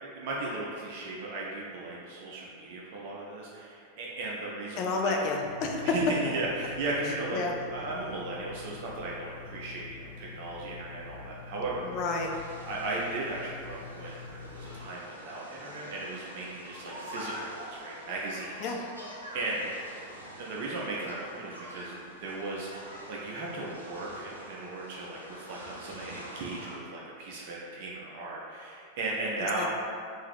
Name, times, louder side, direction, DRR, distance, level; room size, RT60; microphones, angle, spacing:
voice 1, 0.0-5.2 5.8-11.9 12.6-18.6 19.3-19.7 20.0-20.1 20.4-29.7, right 2 dB, 50° right, -4 dB, 0.7 m, -36 dB
voice 2, 4.8-5.8 7.3-7.5 11.8-12.3 18.6-18.8 29.6-29.7, left 3 dB, 40° left, 1 dB, 0.5 m, -30 dB
sound 1, 5.4-14.9, left 5 dB, 85° right, 0.8 m, -46 dB
sound 2, 12.1-26.8, equal, 90° left, 0.8 m, -45 dB
3.8 x 2.7 x 4.6 m, 2.3 s
figure-of-eight pair, 90°, 0 cm